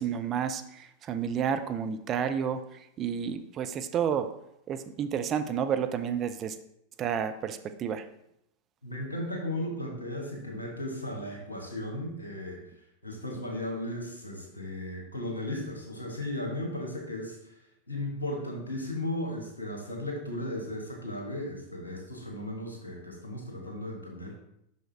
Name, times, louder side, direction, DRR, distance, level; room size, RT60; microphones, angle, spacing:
voice 1, 0.0-2.6 3.0-4.3 4.7-6.5 7.0-8.0, right 8 dB, 30° right, 9 dB, 0.5 m, -30 dB
voice 2, 8.8-12.6 13.0-17.4 17.9-24.3, left 1 dB, 80° left, 0 dB, 1.4 m, -36 dB
5.7 x 5.4 x 3.4 m, 0.77 s
figure-of-eight pair, 90°, 0 cm